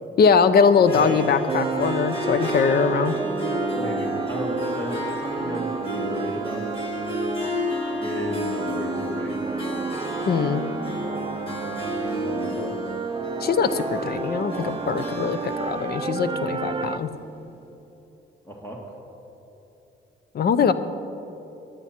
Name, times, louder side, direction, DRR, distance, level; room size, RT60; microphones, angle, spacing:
voice 1, 0.2-3.2 10.3-10.6 13.4-17.1 20.3-20.7, left 6 dB, 55° left, 13 dB, 0.7 m, -21 dB
Harp, 0.8-17.3, equal, 25° left, 2.1 m, -31 dB
sound 1, 1.5-17.0, right 5 dB, 25° right, 0.6 m, -31 dB
voice 2, 3.7-6.9 8.0-9.4 11.5-12.7 18.5-18.8, equal, 10° left, -2 dB, 2.0 m, -35 dB
17.0 x 10.5 x 4.4 m, 3.0 s
cardioid pair, 90°, 20 cm